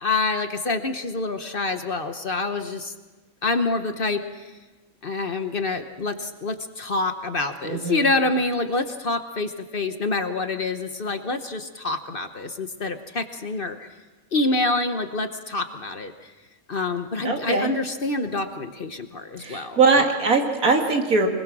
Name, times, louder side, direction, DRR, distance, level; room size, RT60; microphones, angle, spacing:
voice 1, 0.0-2.9 3.4-4.5 5.0-13.9 14.3-16.3 16.7-20.0, left 3 dB, 40° left, 8 dB, 1.1 m, -27 dB
voice 2, 7.6-8.1 17.2-17.7 19.4-21.3, right 4 dB, 75° right, 2 dB, 2.7 m, -21 dB
24.5 x 21.5 x 6.1 m, 1.2 s
omnidirectional pair, 1.5 m